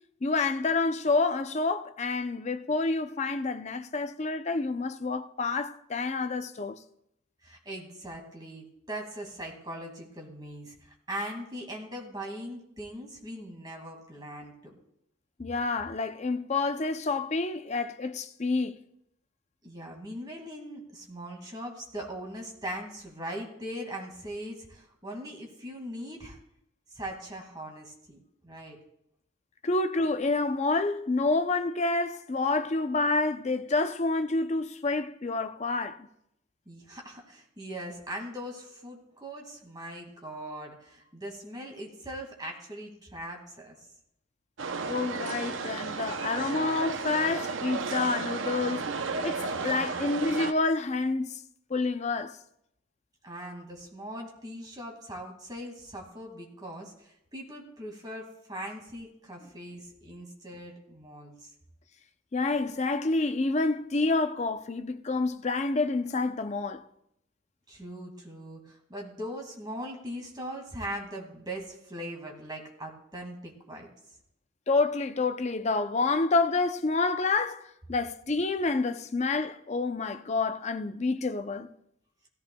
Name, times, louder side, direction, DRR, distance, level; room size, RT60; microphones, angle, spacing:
voice 1, 0.2-6.8 15.4-18.8 29.6-36.1 44.8-48.9 49.2-51.3 51.7-52.4 62.3-66.8 74.7-77.6 77.9-81.7, left 3 dB, 35° left, 0.5 m, -28 dB
voice 2, 7.4-14.7 19.6-26.4 26.9-28.8 36.7-43.9 53.2-61.5 67.7-73.9, equal, 20° right, 2.0 m, -40 dB
sound 1, 44.6-50.5, right 4 dB, 70° right, 0.7 m, -33 dB
16.5 x 14.0 x 2.3 m
head